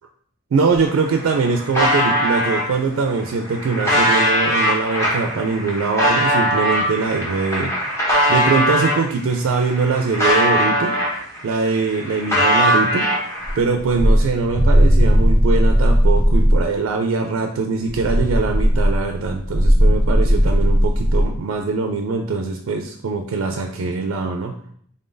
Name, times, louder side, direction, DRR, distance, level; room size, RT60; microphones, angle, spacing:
voice 1, 0.5-7.7 8.3-10.9 11.4-13.1 13.6-24.6, right 4 dB, 80° right, 3 dB, 0.4 m, -22 dB
sound 1, 0.7-0.8 1.1-2.6 3.2-9.0 9.5-11.4 11.7-13.6, equal, 15° left, 0.8 m, -20 dB
sound 2, 13.4-16.7 17.9-21.3, equal, 5° right, 0.3 m, -16 dB
3.7 x 3.6 x 2.6 m, 0.63 s
head